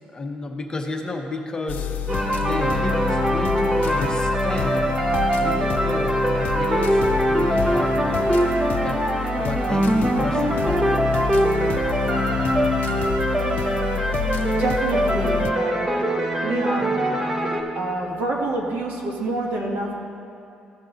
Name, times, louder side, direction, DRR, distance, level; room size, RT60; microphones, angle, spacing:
voice 1, 0.1-2.0 2.4-5.0 5.4-6.2 6.5-8.3 8.8-9.1 9.4-11.0, left 2 dB, 25° left, 2 dB, 0.8 m, -32 dB
sound 1, 1.7-15.5, left 9 dB, 70° left, 0.4 m, -29 dB
sound 2, 2.1-17.6, right 1 dB, 20° right, 0.8 m, -22 dB
voice 2, 14.6-15.7 16.4-16.9 17.7-19.9, right 2 dB, 80° right, -1 dB, 1.5 m, -27 dB
15.0 x 5.3 x 3.9 m, 2.6 s
cardioid pair, 125°, 3 cm